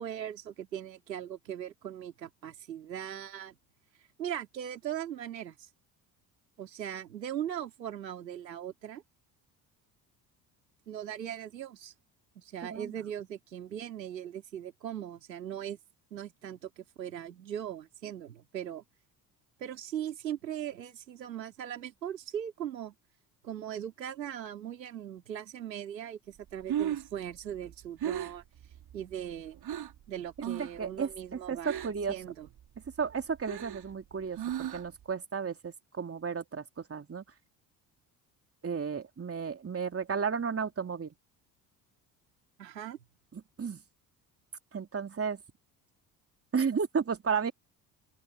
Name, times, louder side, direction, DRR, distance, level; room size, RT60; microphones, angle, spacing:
voice 1, 0.0-3.6 4.2-5.6 6.6-9.0 10.9-11.9 12.4-15.8 16.1-18.8 19.6-22.9 23.4-28.4 28.9-29.6 30.1-32.5 42.6-43.0, right 10 dB, 85° right, 3.6 m, -39 dB
Breathing, 26.4-30.0 30.4-30.8 31.1-32.1 32.5-35.0, right 10 dB, 50° right, 5.6 m, -36 dB
voice 2, 30.6-32.1 33.0-37.2 38.6-41.1 43.3-43.8 44.7-45.4 46.5-47.5, right 6 dB, 30° right, 3.2 m, -33 dB
open air
hypercardioid pair, 55°, 49 cm